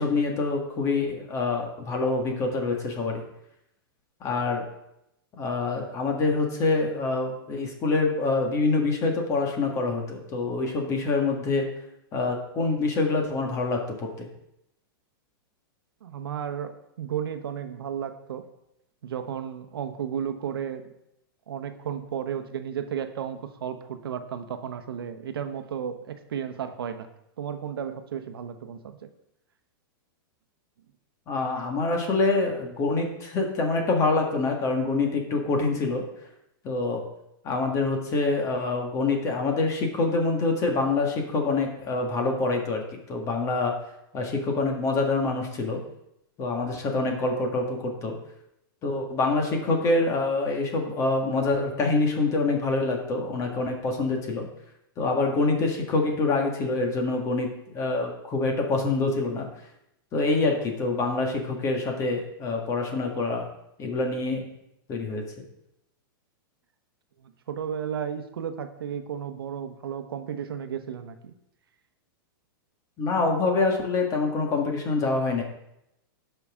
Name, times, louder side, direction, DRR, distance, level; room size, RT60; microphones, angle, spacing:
voice 1, 0.0-3.2 4.2-4.7 5.4-11.7 12.1-14.3 31.3-36.1 36.6-37.0 37.4-42.8 43.1-43.7 44.1-45.8 46.4-48.2 48.8-54.5 55.0-59.5 60.1-63.5 63.8-64.5 64.9-65.2 73.0-75.4, left 3 dB, 25° left, 2 dB, 1.9 m, -26 dB
voice 2, 16.0-18.4 19.0-20.8 21.5-27.1 27.4-29.1 67.2-71.3, right 8 dB, 90° right, 8 dB, 1.0 m, -33 dB
17.0 x 5.8 x 3.7 m, 0.83 s
supercardioid pair, 150°, 12 cm